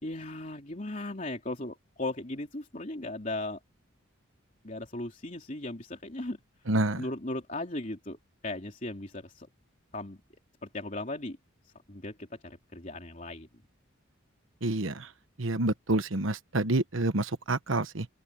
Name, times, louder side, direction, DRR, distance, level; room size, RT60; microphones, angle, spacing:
voice 1, 0.0-3.6 4.6-6.4 7.0-8.2 8.4-9.5 9.9-10.2 10.6-11.4 11.6-13.5, left 2 dB, 40° left, 3.4 m, -37 dB
voice 2, 6.7-7.0 14.6-15.1 15.4-18.1, right 2 dB, 80° right, 1.2 m, -28 dB
open air
head